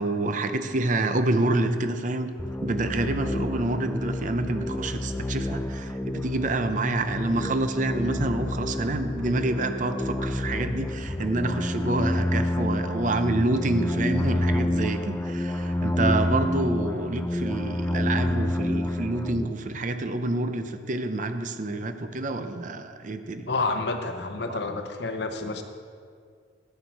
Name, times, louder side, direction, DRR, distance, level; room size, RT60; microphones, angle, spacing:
voice 1, 0.0-2.3 2.6-23.5 24.5-24.6, right 2 dB, 40° right, 9 dB, 0.6 m, -28 dB
sound 1, 2.4-19.5, left 1 dB, 10° left, 0.4 m, -28 dB
voice 2, 23.5-25.6, left 3 dB, 60° left, 7 dB, 0.8 m, -29 dB
10.5 x 8.1 x 4.6 m, 2.1 s
head